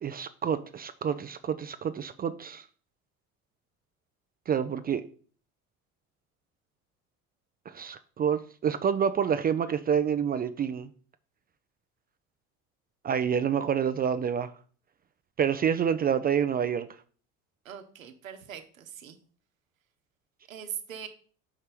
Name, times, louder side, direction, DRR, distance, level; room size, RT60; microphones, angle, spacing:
voice 1, 0.0-2.6 4.5-5.0 7.7-10.9 13.0-14.5 15.4-16.9, right 8 dB, 25° right, 0.5 m, -28 dB
voice 2, 17.6-19.2 20.5-21.1, right 8 dB, 80° right, 1.0 m, -41 dB
5.3 x 4.9 x 5.9 m
figure-of-eight pair, 60°, 40 cm